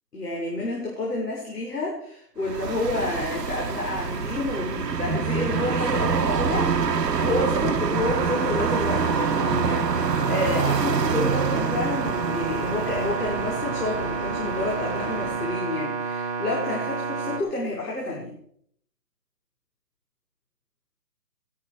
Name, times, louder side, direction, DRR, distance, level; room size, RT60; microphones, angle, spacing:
voice 1, 0.1-18.3, left 2 dB, 65° left, -3 dB, 5.6 m, -29 dB
sound 1, 2.4-15.7, right 6 dB, 75° right, 1.3 m, -28 dB
Singing, 2.6-13.0, right 5 dB, 20° right, 5.7 m, -31 dB
sound 2, 7.9-17.4, right 4 dB, 40° right, 3.3 m, -30 dB
20.0 x 9.7 x 4.8 m, 0.65 s
hypercardioid pair, 175°, 49 cm